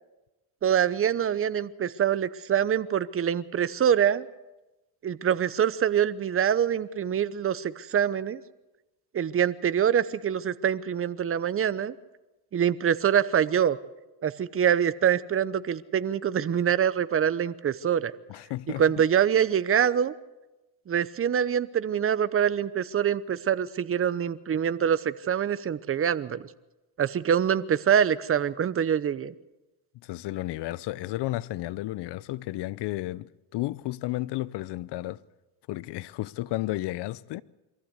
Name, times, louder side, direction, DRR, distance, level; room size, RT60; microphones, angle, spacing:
voice 1, 0.6-4.3 5.0-8.4 9.1-11.9 12.5-13.8 14.2-18.1 18.8-20.1 20.9-26.5 27.0-29.3, right 8 dB, 25° right, 0.8 m, -25 dB
voice 2, 18.3-19.0 30.0-35.2 35.7-37.4, left 17 dB, 55° left, 0.8 m, -33 dB
23.5 x 15.0 x 8.1 m
supercardioid pair, 100°, 49 cm